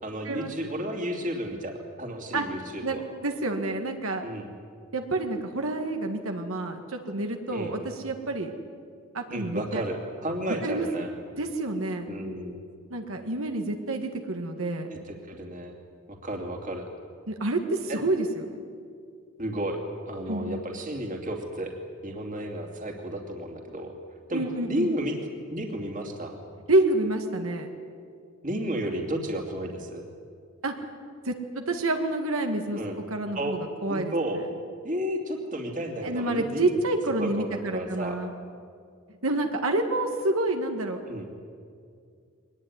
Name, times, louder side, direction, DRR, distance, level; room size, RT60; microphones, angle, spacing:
voice 1, 0.0-3.0 4.2-4.5 7.5-7.8 9.3-11.1 12.1-12.6 14.9-15.7 16.2-16.9 17.9-18.0 19.4-19.8 20.1-21.7 22.0-23.9 24.3-24.4 24.7-25.2 25.5-26.4 28.4-30.0 32.8-33.0 33.3-33.6 33.9-34.4 34.8-36.8 37.2-38.2 41.1-41.3, right 1 dB, 40° right, 2 dB, 2.7 m, -32 dB
voice 2, 2.8-4.2 4.9-8.5 9.1-9.8 10.6-10.9 11.4-12.1 12.9-14.9 17.3-18.6 20.3-20.6 24.3-24.9 26.7-27.7 28.9-29.1 30.6-30.8 31.2-32.8 33.1-34.1 36.0-38.3 39.2-41.0, right 2 dB, 80° right, 4 dB, 2.0 m, -28 dB
23.5 x 19.5 x 9.6 m, 2.2 s
head